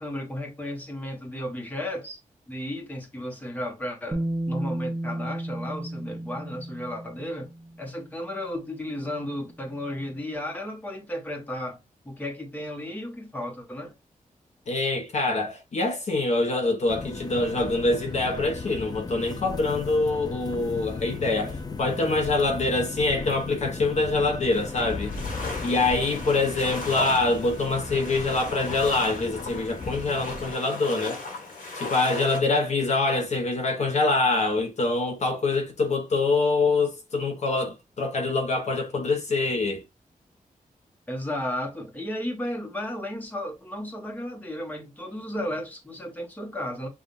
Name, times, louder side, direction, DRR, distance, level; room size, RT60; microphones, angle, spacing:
voice 1, 0.0-2.2 2.5-7.5 7.8-11.8 12.0-13.9 41.1-46.9, left 1 dB, 10° left, 1.0 m, -34 dB
Bass guitar, 4.1-8.0 9.2-9.3, right 1 dB, 15° right, 0.8 m, -33 dB
voice 2, 14.7-31.2 31.7-39.8, left 3 dB, 55° left, 0.8 m, -25 dB
sound 1, 16.9-30.5, left 4 dB, 30° left, 0.4 m, -36 dB
sound 2, 24.5-32.4, left 3 dB, 85° left, 1.7 m, -37 dB
6.9 x 2.4 x 2.5 m
wide cardioid pair, 155°, 14 cm